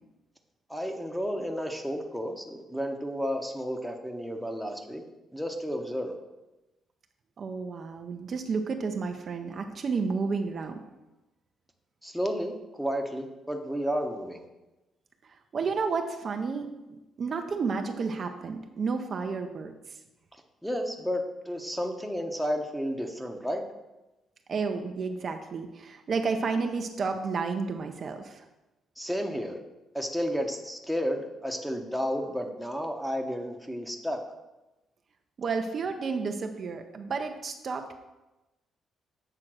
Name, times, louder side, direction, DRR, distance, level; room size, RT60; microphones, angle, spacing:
voice 1, 0.7-5.0 5.3-6.1 12.0-14.5 20.6-23.6 29.0-29.6 29.9-34.2, equal, ahead, 4 dB, 1.0 m, -32 dB
voice 2, 7.4-10.8 15.5-16.7 17.2-19.7 24.5-28.5 35.4-38.0, right 4 dB, 50° right, 5 dB, 0.6 m, -31 dB
7.8 x 3.7 x 6.1 m, 1.0 s
cardioid pair, 90°, 0 cm